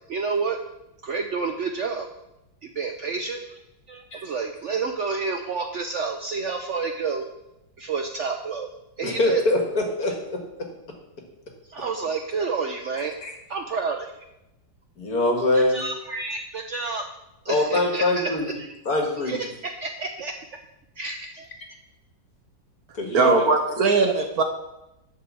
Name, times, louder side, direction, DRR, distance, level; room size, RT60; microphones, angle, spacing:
voice 1, 0.1-0.6 1.0-2.1 2.6-3.6 3.9-7.3 7.8-8.7 9.0-9.4 11.7-13.1 13.5-14.1 15.5-17.0 17.4-18.3 19.3-19.5 19.8-20.3 21.0-21.5, right 4 dB, 85° right, 4 dB, 0.6 m, -29 dB
voice 2, 9.0-10.7 13.2-13.3 15.0-15.8 17.5-18.5 18.9-19.4 22.9-23.4, left 2 dB, 50° left, 2 dB, 2.3 m, -23 dB
voice 3, 23.1-24.4, right 4 dB, 60° right, 5 dB, 1.1 m, -20 dB
11.5 x 4.6 x 7.5 m, 0.90 s
omnidirectional pair, 2.2 m